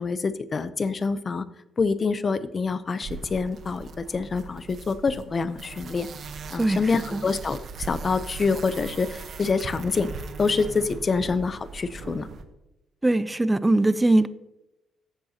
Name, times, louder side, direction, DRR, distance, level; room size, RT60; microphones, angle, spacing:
voice 1, 0.0-1.4 1.8-6.1 6.5-10.1 10.4-12.3, left 4 dB, 35° left, 14 dB, 0.6 m, -26 dB
sound 1, 3.0-12.4, right 4 dB, 55° right, 0.9 m, -39 dB
voice 2, 13.0-14.3, right 2 dB, 15° right, 16 dB, 0.5 m, -21 dB
14.0 x 7.7 x 2.9 m, 0.95 s
cardioid pair, 90°, 0 cm